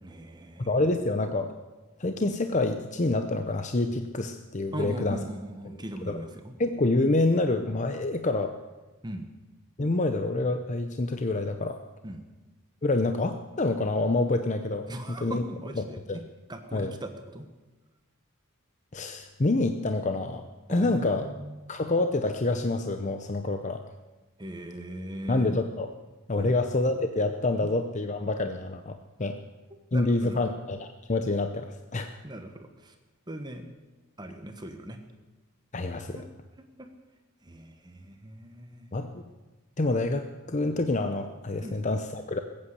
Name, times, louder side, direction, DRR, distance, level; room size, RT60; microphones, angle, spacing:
voice 1, 0.0-0.8 4.7-6.5 9.0-9.3 12.0-12.2 14.9-16.2 16.5-17.5 20.7-21.7 24.4-25.5 26.4-26.6 29.9-30.4 32.2-33.0 33.3-33.7 34.2-35.0 36.1-36.3 36.8-36.9 37.4-38.9 41.6-41.8, right 1 dB, 20° right, 6 dB, 1.2 m, -39 dB
voice 2, 0.7-1.5 2.0-5.2 6.1-6.2 6.6-8.5 9.8-11.8 12.8-14.9 15.2-15.4 16.1-16.2 16.7-16.9 18.9-20.4 20.7-21.3 21.7-23.8 25.3-25.9 26.3-29.4 29.9-32.1 35.7-36.2 38.9-39.2 39.8-42.4, left 2 dB, 35° left, 7 dB, 0.7 m, -27 dB
20.5 x 8.7 x 8.2 m, 1.2 s
head